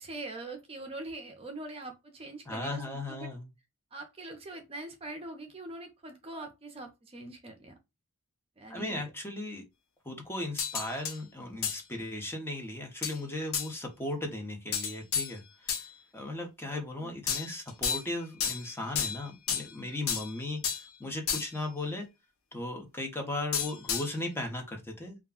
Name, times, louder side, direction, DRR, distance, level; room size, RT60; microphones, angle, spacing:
voice 1, 0.0-3.3 3.9-7.7 8.6-9.0 16.7-17.1, right 2 dB, 25° right, 0.5 m, -43 dB
voice 2, 2.5-3.5 8.7-9.7 10.0-22.1 22.5-25.2, left 2 dB, 10° left, 0.6 m, -37 dB
sound 1, 10.6-11.2 11.6-11.8 13.0-13.2 13.5-13.7 14.7-15.9 17.3-18.1 18.4-19.7 20.1-20.9 21.3-21.7 23.5-24.2, left 7 dB, 70° left, 0.7 m, -32 dB
2.4 x 2.1 x 3.5 m
head